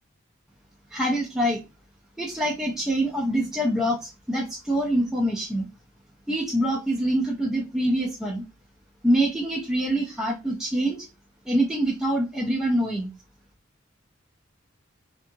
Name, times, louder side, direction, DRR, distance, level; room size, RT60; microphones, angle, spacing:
voice 1, 0.9-1.6 2.2-5.7 6.3-8.4 9.0-11.1 11.5-13.1, right 1 dB, 5° right, 0.5 m, -25 dB
2.7 x 2.3 x 2.6 m
head